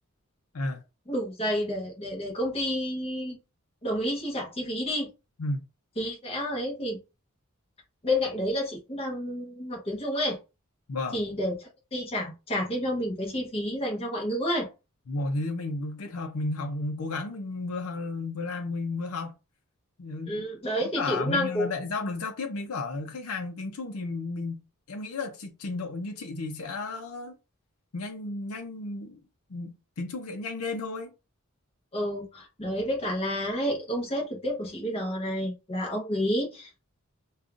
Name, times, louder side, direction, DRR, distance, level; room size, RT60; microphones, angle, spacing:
voice 1, 1.1-3.4 3.8-5.1 6.0-7.0 8.0-10.4 11.1-11.5 11.9-14.7 20.3-21.7 31.9-36.7, equal, 25° left, 1.0 m, -30 dB
voice 2, 10.9-11.2 15.1-19.3 20.0-20.4 20.8-27.3 27.9-29.2 29.5-31.1, left 3 dB, 80° left, 0.6 m, -33 dB
5.1 x 2.3 x 2.5 m
head